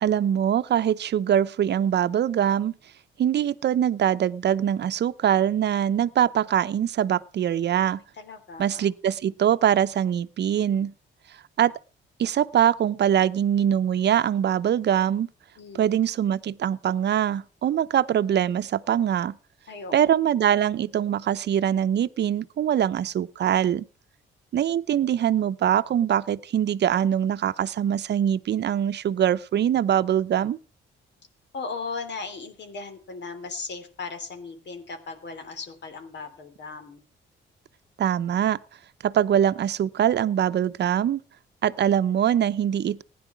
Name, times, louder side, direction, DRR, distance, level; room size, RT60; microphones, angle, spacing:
voice 1, 0.0-2.7 3.2-8.0 8.6-10.9 11.6-11.7 12.2-15.3 15.7-19.3 19.9-23.8 24.5-30.6 38.0-38.6 39.0-41.2 41.6-43.0, right 9 dB, 60° right, 0.8 m, -23 dB
voice 2, 8.2-8.8 15.6-15.9 19.7-19.9 31.5-37.0, left 4 dB, 60° left, 3.2 m, -37 dB
16.0 x 10.0 x 6.0 m
cardioid pair, 80°, 20 cm